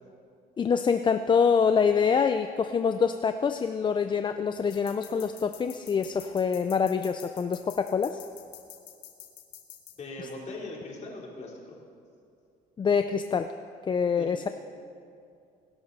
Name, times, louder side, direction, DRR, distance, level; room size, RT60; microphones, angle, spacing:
voice 1, 0.6-8.2 12.8-13.5 13.9-14.5, left 6 dB, 30° left, 8 dB, 0.5 m, -25 dB
sound 1, 4.7-9.9, left 12 dB, 85° left, 1.5 m, -47 dB
voice 2, 10.0-11.7 14.2-14.3, left 2 dB, 45° left, -3 dB, 3.7 m, -40 dB
23.0 x 12.0 x 4.2 m, 2.4 s
cardioid pair, 110°, 17 cm